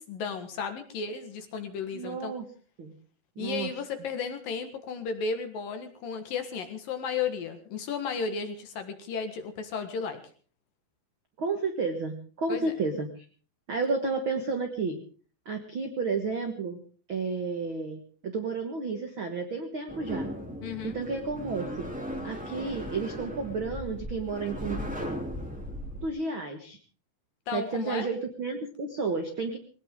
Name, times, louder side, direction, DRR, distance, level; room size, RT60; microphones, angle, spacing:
voice 1, 0.0-2.3 3.4-10.2 12.5-12.7 20.6-21.0 27.5-28.1, left 5 dB, 60° left, 7 dB, 3.0 m, -34 dB
voice 2, 1.9-2.4 2.8-2.9 3.3-3.7 11.4-13.2 13.7-15.0 15.4-16.8 17.1-20.3 20.8-21.9 22.2-24.8 26.0-26.8 27.5-29.6, right 4 dB, 70° right, 5 dB, 1.2 m, -31 dB
sound 1, 19.9-26.1, equal, ahead, 2.1 m, -37 dB
20.5 x 18.5 x 3.7 m, 0.39 s
omnidirectional pair, 5.1 m